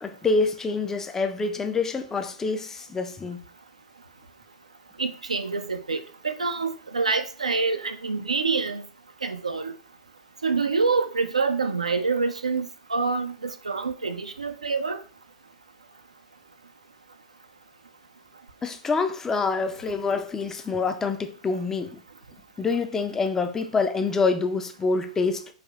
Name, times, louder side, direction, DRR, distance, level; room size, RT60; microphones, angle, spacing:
voice 1, 0.0-3.4 18.6-22.0 22.6-25.5, left 4 dB, 15° left, 0.3 m, -26 dB
voice 2, 5.0-8.8 9.2-9.7 10.4-15.0, right 4 dB, 80° right, 0.3 m, -26 dB
3.4 x 2.4 x 2.3 m
figure-of-eight pair, 105°, 4 cm